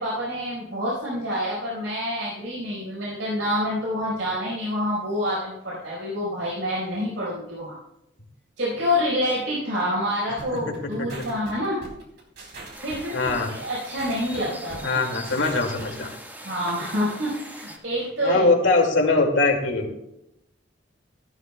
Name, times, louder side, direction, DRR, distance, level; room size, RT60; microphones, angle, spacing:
voice 1, 0.0-7.8 8.6-11.8 12.8-15.0 15.3-15.5 16.4-18.4, equal, 85° right, -6 dB, 4.7 m, -27 dB
sound 1, 10.4-16.0, right 2 dB, 65° right, 3.6 m, -41 dB
voice 2, 10.5-11.2 13.1-13.5 14.8-16.1 18.2-19.9, left 3 dB, 85° left, 2 dB, 2.3 m, -22 dB
sound 2, 12.7-17.8, equal, 10° right, 1.6 m, -41 dB
15.5 x 13.0 x 2.3 m, 0.84 s
head